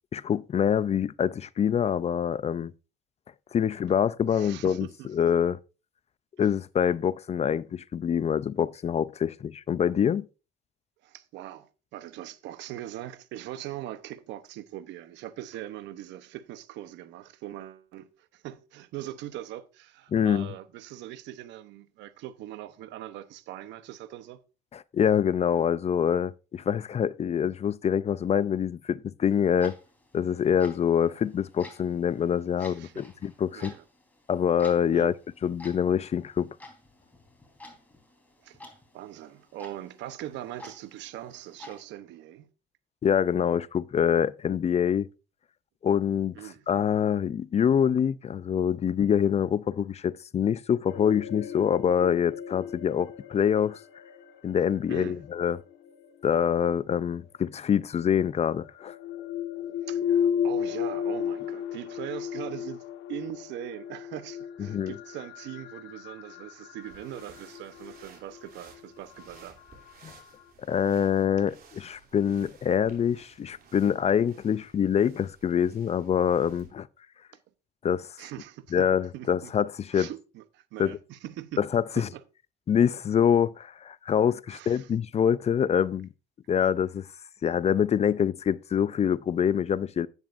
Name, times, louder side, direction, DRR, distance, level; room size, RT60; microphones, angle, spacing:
voice 1, 0.1-2.7 3.5-5.6 6.4-10.2 20.1-20.5 24.7-29.7 30.1-33.7 34.3-35.1 35.4-36.5 43.0-45.1 45.8-46.4 46.7-53.8 54.4-55.6 56.2-59.0 64.7-64.9 70.0-70.1 70.7-76.9 77.8-78.1 78.7-80.1 80.8-81.0 81.6-82.1 82.7-86.1 86.5-87.1 87.4-90.1, left 8 dB, 35° left, 0.4 m, -25 dB
voice 2, 4.3-5.1 6.4-6.5 11.0-24.4 32.6-33.0 33.5-33.8 34.9-35.1 38.4-42.5 46.3-46.6 54.9-55.2 59.8-62.8 63.1-69.6 78.2-78.9 79.1-79.5 79.9-81.6 81.9-82.2 84.5-84.9, right 13 dB, 80° right, 0.9 m, -41 dB
Clock, 29.2-41.8, left 2 dB, 10° left, 3.7 m, -51 dB
sound 1, 50.9-56.9 58.0-70.5, left 8 dB, 70° left, 1.3 m, -35 dB
sound 2, 66.8-76.7, right 5 dB, 55° right, 2.9 m, -56 dB
10.5 x 9.1 x 2.5 m
cardioid pair, 85°, 18 cm